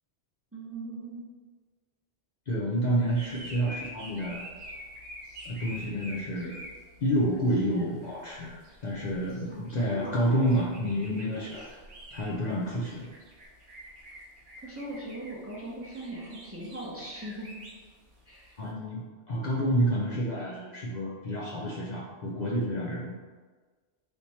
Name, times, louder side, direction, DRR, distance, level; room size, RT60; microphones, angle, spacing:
voice 1, 0.5-1.2 9.5-10.2 14.6-17.5 18.3-18.5, right 1 dB, 15° right, -6 dB, 0.7 m, -40 dB
voice 2, 2.5-4.5 5.4-6.6 7.0-11.7 12.1-13.1 18.6-23.1, equal, 50° left, -6 dB, 0.6 m, -29 dB
sound 1, 3.1-18.7, equal, 55° right, 0.8 m, -47 dB
3.4 x 2.9 x 4.1 m, 1.4 s
omnidirectional pair, 1.1 m